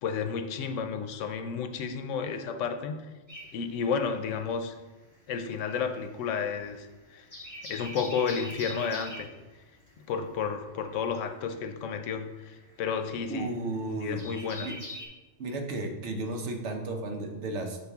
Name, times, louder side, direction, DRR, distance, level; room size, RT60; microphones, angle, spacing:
voice 1, 0.0-3.0 3.5-4.8 5.3-7.3 7.7-9.3 10.1-13.5 14.0-14.7, left 6 dB, 90° left, 7 dB, 1.0 m, -32 dB
sound 1, 3.3-4.7 5.0-15.1, equal, 15° left, 1.0 m, -44 dB
voice 2, 13.3-14.2 14.6-14.8 15.4-17.8, right 2 dB, 70° right, 3 dB, 1.1 m, -33 dB
6.7 x 4.2 x 3.5 m, 1.2 s
omnidirectional pair, 1.2 m